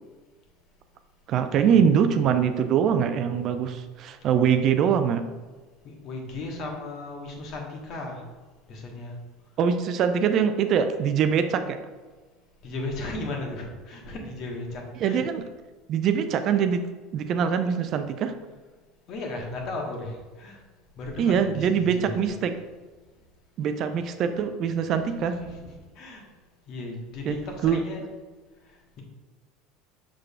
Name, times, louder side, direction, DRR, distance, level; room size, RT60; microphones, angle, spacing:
voice 1, 1.3-5.2 9.6-11.8 15.0-15.4 15.9-16.8 17.1-18.3 21.2-22.5 23.6-25.3 27.3-27.4 27.6-27.8, right 7 dB, 45° right, 9 dB, 0.4 m, -23 dB
voice 2, 5.8-8.2 8.7-9.1 12.6-15.2 19.1-20.6 21.0-22.2 23.8-23.9 25.1-26.2 26.7-28.0, left 2 dB, 45° left, 1 dB, 1.3 m, -36 dB
6.5 x 6.1 x 2.4 m, 1.3 s
figure-of-eight pair, 70°, 0 cm